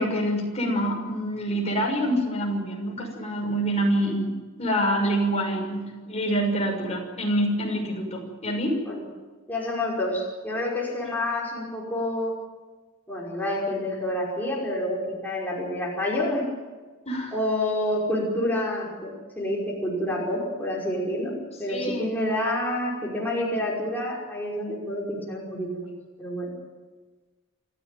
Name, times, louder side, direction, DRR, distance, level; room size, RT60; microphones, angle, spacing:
voice 1, 0.0-4.3 4.6-8.8 17.0-17.4 21.7-22.1, equal, 30° left, 0 dB, 6.3 m, -26 dB
voice 2, 9.5-12.3 13.1-16.5 17.3-25.9 26.2-26.5, left 1 dB, 10° left, -4 dB, 5.5 m, -28 dB
29.0 x 13.5 x 9.3 m, 1.3 s
head